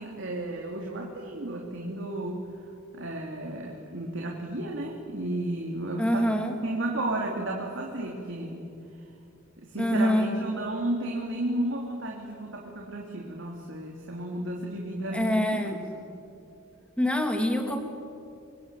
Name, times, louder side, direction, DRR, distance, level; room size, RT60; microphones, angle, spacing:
voice 1, 0.0-2.4 2.9-8.7 9.6-16.1, right 1 dB, 60° right, -1 dB, 3.2 m, -33 dB
voice 2, 6.0-6.5 9.8-10.3 15.1-15.8 17.0-17.8, left 1 dB, 5° left, 4 dB, 2.9 m, -25 dB
26.5 x 24.0 x 9.2 m, 2.6 s
head